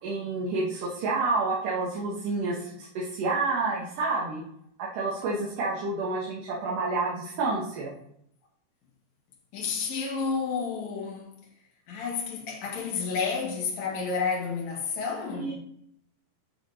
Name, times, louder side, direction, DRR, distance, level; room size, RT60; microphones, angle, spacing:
voice 1, 0.0-4.4 4.9-7.9 15.4-15.5, right 3 dB, 65° right, 2.4 m, -29 dB
voice 2, 9.5-11.3 11.9-15.5, left 5 dB, 55° left, 2.5 m, -30 dB
12.0 x 5.8 x 2.8 m
omnidirectional pair, 4.8 m